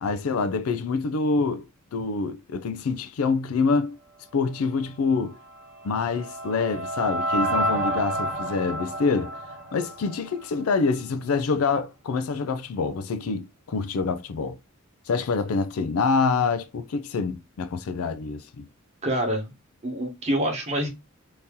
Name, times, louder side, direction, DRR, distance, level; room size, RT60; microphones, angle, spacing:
voice 1, 0.0-4.0 4.3-5.4 5.8-9.3 9.7-14.6 15.1-18.7, left 4 dB, 80° left, 0.4 m, -26 dB
sound 1, 5.5-10.6, right 1 dB, 60° right, 0.9 m, -29 dB
voice 2, 19.0-19.5 19.8-20.9, right 1 dB, 30° right, 1.2 m, -26 dB
2.9 x 2.7 x 3.6 m
head